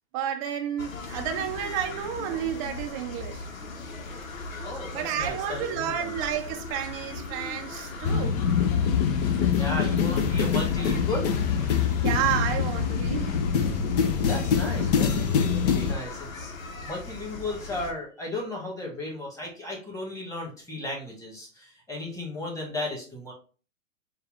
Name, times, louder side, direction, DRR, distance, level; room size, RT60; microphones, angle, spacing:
voice 1, 0.1-3.5 4.9-8.4 12.0-13.4, right 9 dB, 25° right, 0.4 m, -31 dB
sound 1, 0.8-17.9, left 3 dB, 80° left, 0.9 m, -39 dB
voice 2, 4.6-6.1 9.5-11.3 11.7-12.1 14.2-23.3, left 2 dB, 10° left, 1.6 m, -35 dB
sound 2, 8.0-15.9, left 7 dB, 35° left, 0.4 m, -24 dB
4.5 x 2.3 x 3.5 m
hypercardioid pair, 120°, 40 cm